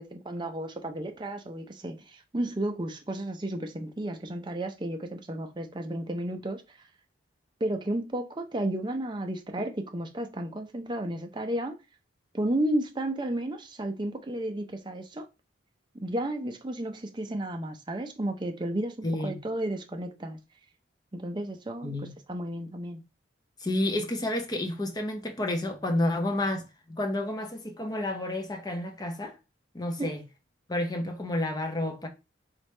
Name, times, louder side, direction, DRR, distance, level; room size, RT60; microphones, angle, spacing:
voice 1, 0.0-6.8 7.6-11.8 12.3-15.3 15.9-20.4 21.1-23.0 30.0-30.1, right 1 dB, 25° right, 0.5 m, -33 dB
voice 2, 19.0-19.4 21.8-22.1 23.6-29.4 29.7-30.2 30.7-32.1, left 1 dB, 20° left, 0.7 m, -30 dB
3.9 x 3.3 x 3.2 m
head